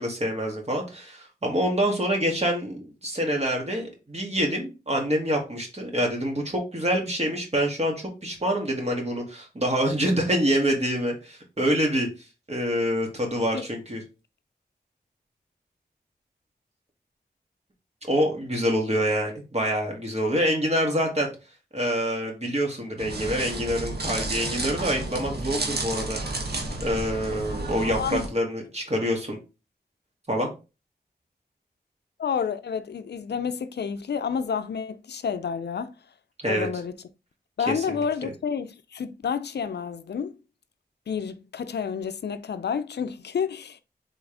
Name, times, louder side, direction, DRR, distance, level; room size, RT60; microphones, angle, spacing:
voice 1, 0.0-7.9 8.2-12.1 12.5-14.0 18.1-21.3 21.7-26.2 26.8-29.4 30.3-30.5 36.4-36.7 37.7-38.3, equal, 40° right, 1.9 m, -26 dB
sound 1, 23.0-28.3, right 2 dB, 70° right, 1.2 m, -31 dB
voice 2, 32.2-35.9 36.5-36.9 37.6-40.4 41.1-43.8, left 6 dB, 85° left, 0.4 m, -29 dB
4.3 x 3.5 x 3.3 m
cardioid pair, 40°, 17 cm